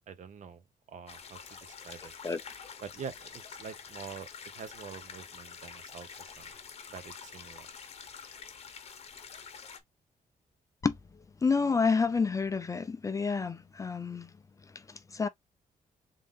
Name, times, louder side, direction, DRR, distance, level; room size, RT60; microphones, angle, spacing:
voice 1, 0.1-2.1 2.8-4.3 4.5-6.5 6.9-7.7, right 7 dB, 55° right, 0.7 m, -46 dB
sound 1, 1.1-9.8, left 6 dB, 45° left, 0.8 m, -47 dB
voice 2, 11.4-14.3 15.1-15.3, left 5 dB, 20° left, 0.4 m, -28 dB
3.7 x 2.6 x 3.5 m
wide cardioid pair, 170°, 15 cm